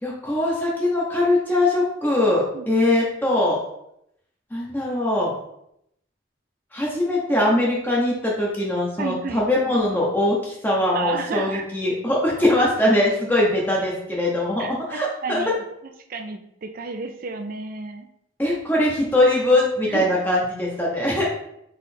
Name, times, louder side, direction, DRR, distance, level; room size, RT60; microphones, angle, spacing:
voice 1, 0.0-3.6 4.5-5.3 6.7-15.4 18.4-21.2, left 1 dB, 10° left, -4 dB, 0.7 m, -21 dB
voice 2, 2.5-2.8 9.0-9.4 10.9-11.7 14.6-15.6 16.1-18.1 18.4-18.6 19.9-20.1, right 4 dB, 45° right, 6 dB, 0.5 m, -32 dB
3.9 x 3.1 x 4.2 m, 0.78 s
head